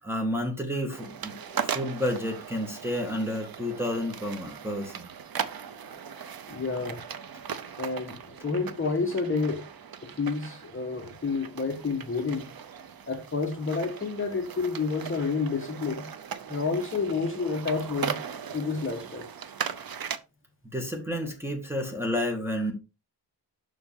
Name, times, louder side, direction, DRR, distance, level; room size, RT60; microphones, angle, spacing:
voice 1, 0.0-5.1 20.6-22.7, left 1 dB, 5° right, 2.0 m, -31 dB
sound 1, 0.9-20.2, right 7 dB, 55° right, 0.7 m, -38 dB
voice 2, 6.5-7.0 7.8-9.6 10.0-12.5 13.1-16.1 16.5-18.2 18.5-19.3, left 4 dB, 30° left, 1.3 m, -29 dB
7.1 x 6.1 x 3.6 m
wide cardioid pair, 160°, 42 cm